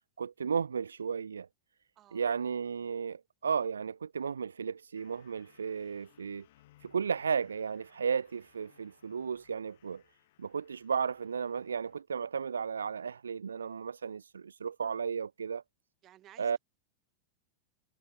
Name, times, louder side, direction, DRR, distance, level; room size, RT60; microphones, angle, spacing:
voice 1, 0.2-1.5 2.1-6.5 6.8-10.0 10.4-15.6 16.4-16.6, right 6 dB, 70° right, 0.3 m, -34 dB
voice 2, 2.0-2.4 16.0-16.6, right 13 dB, 30° right, 7.1 m, -58 dB
sound 1, 5.0-12.0, left 16 dB, 55° left, 1.7 m, -66 dB
figure-of-eight pair, 90°, 0 cm